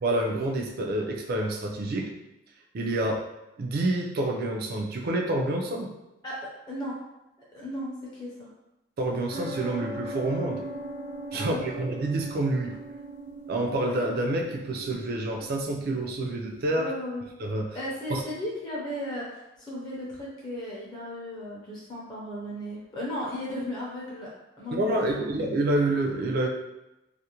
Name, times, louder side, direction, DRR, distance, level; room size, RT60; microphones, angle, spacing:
voice 1, 0.0-2.1 2.7-3.2 3.6-5.9 9.0-10.6 11.3-12.8 13.5-16.9 17.4-17.8 18.1-18.2 24.7-26.5, right 1 dB, 55° right, 1 dB, 0.4 m, -28 dB
voice 2, 6.2-7.0 7.5-8.5 11.3-11.8 16.7-17.3 17.7-24.3 24.6-25.3, equal, 20° left, -6 dB, 0.5 m, -36 dB
sound 1, 9.3-16.7, right 1 dB, 85° left, 0.7 m, -40 dB
2.4 x 2.1 x 2.8 m, 0.95 s
head